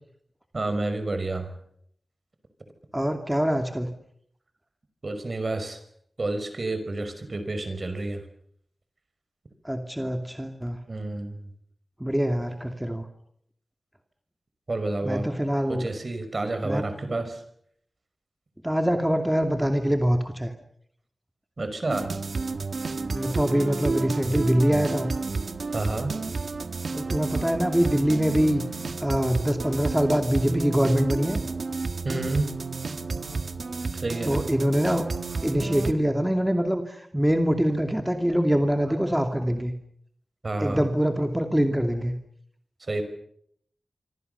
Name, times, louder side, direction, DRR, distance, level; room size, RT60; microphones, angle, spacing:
voice 1, 0.5-1.5 5.0-5.8 6.2-8.2 10.9-11.4 14.7-15.3 15.7-17.4 21.6-22.1 25.7-26.1 32.0-32.5 34.0-34.4 38.3-38.4 38.9-39.1 40.4-40.9 42.9-43.0, right 2 dB, 45° right, 9 dB, 5.6 m, -29 dB
voice 2, 2.9-3.9 9.6-10.8 12.0-13.0 15.0-15.9 16.6-16.8 18.6-20.5 23.1-25.1 26.9-28.6 29.0-31.4 34.2-35.0 35.4-36.8 37.1-39.7 40.6-42.1, equal, 5° right, 5 dB, 2.6 m, -24 dB
sound 1, 21.9-35.9, right 4 dB, 60° right, 1.7 m, -31 dB
26.0 x 26.0 x 6.9 m, 0.68 s
wide cardioid pair, 85°, 0 cm